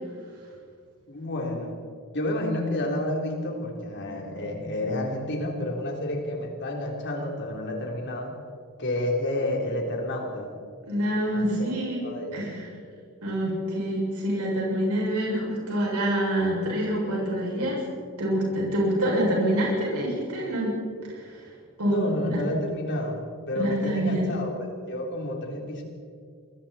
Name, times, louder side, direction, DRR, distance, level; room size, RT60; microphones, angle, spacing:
voice 1, 1.1-1.8 2.1-8.3 8.8-10.5 11.3-11.7 12.0-12.4 21.9-25.8, left 1 dB, 55° left, 0 dB, 3.8 m, -30 dB
voice 2, 10.8-12.0 12.3-12.7 13.2-17.8 18.2-20.8 21.1-21.5 21.8-22.0 22.3-22.4 23.5-24.3, right 1 dB, 85° right, -3 dB, 7.0 m, -26 dB
27.5 x 22.0 x 4.4 m, 2.1 s
head